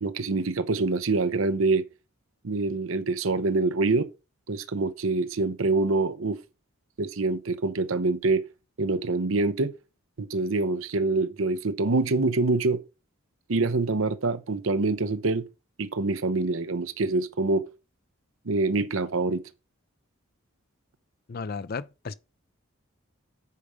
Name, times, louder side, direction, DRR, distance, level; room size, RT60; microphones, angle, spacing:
voice 1, 0.0-1.9 2.4-4.1 4.5-6.4 7.0-8.4 8.8-9.7 10.2-12.8 13.5-15.4 15.8-17.6 18.4-19.4, right 3 dB, 75° right, 0.8 m, -25 dB
voice 2, 21.3-22.1, left 4 dB, 45° left, 0.4 m, -34 dB
8.3 x 4.9 x 5.1 m
head